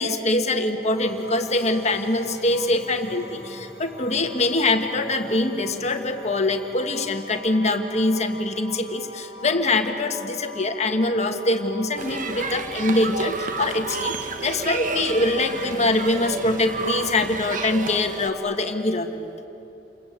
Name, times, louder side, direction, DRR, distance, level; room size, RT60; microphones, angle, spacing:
voice 1, 0.0-14.2 14.4-19.5, left 2 dB, 40° left, 5 dB, 1.6 m, -24 dB
sound 1, 0.9-18.5, left 1 dB, 15° right, 5.5 m, -42 dB
sound 2, 12.0-18.3, right 4 dB, 50° right, 1.4 m, -31 dB
28.5 x 22.5 x 8.9 m, 2.9 s
head